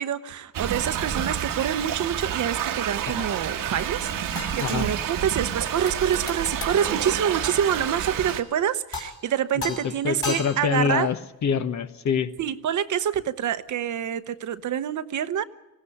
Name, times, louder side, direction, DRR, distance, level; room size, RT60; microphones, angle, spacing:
voice 1, 0.0-11.1 12.4-15.4, right 9 dB, 60° right, 13 dB, 0.9 m, -27 dB
Thunder / Rain, 0.5-8.4, right 9 dB, 80° right, 1.4 m, -29 dB
sound 1, 4.4-5.3 5.9-6.8 8.3-8.6 8.9-9.3 9.6-10.9 13.4-13.5, left 3 dB, 40° left, 3.7 m, -36 dB
voice 2, 9.7-12.3, left 6 dB, 55° left, 11 dB, 1.1 m, -26 dB
19.5 x 16.5 x 9.9 m, 0.96 s
cardioid pair, 95°, 33 cm